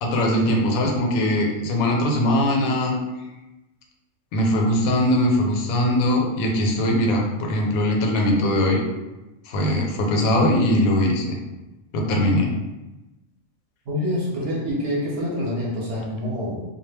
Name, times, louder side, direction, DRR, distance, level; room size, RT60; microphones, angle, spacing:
voice 1, 0.0-2.9 4.3-8.8 9.5-11.4 11.9-12.5, left 1 dB, 85° left, 1 dB, 1.0 m, -21 dB
voice 2, 13.9-16.6, left 1 dB, 55° right, -5 dB, 0.7 m, -26 dB
2.2 x 2.1 x 3.2 m, 1.0 s
omnidirectional pair, 1.4 m